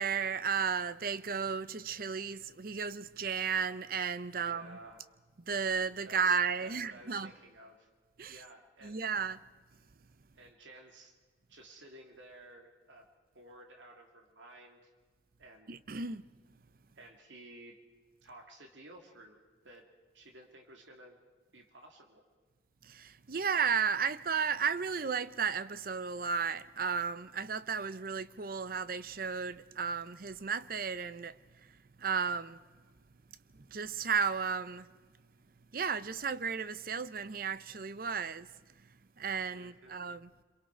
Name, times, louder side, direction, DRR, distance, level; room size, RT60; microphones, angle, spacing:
voice 1, 0.0-4.8 5.5-7.3 8.2-8.4 8.8-9.4 15.7-16.2 22.9-31.3 32.0-32.6 33.7-34.8 35.7-38.5 39.2-40.3, right 6 dB, 50° right, 0.6 m, -33 dB
voice 2, 4.3-5.0 6.1-7.9 8.3-9.0 10.4-11.1 11.5-13.1 13.3-14.9 15.4-15.7 17.0-17.8 18.2-19.4 19.6-19.9 20.1-21.2 21.5-22.2 39.5-40.0, right 1 dB, 85° right, 2.5 m, -54 dB
27.5 x 22.5 x 4.5 m
head